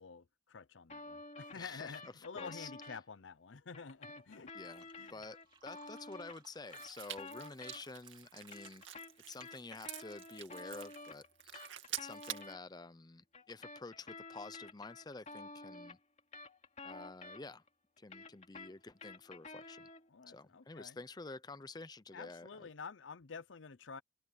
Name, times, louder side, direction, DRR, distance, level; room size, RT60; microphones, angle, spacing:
voice 1, 0.0-4.5 5.0-5.2 20.1-21.0 22.1-24.0, left 5 dB, 85° left, 0.7 m, -49 dB
sound 1, 0.9-3.0 3.7-8.1 8.4-12.6 13.3-17.7 18.0-20.1, left 3 dB, 35° left, 3.0 m, -51 dB
voice 2, 1.5-2.7 4.5-8.8 9.3-11.6 12.0-16.0 16.8-17.6 18.0-19.9 20.3-22.7, left 3 dB, 20° left, 0.6 m, -50 dB
Fill (with liquid), 4.2-4.3 4.5-9.3, right 4 dB, 25° right, 2.8 m, -65 dB
sound 2, 6.7-12.5, right 12 dB, 85° right, 2.2 m, -48 dB
open air
head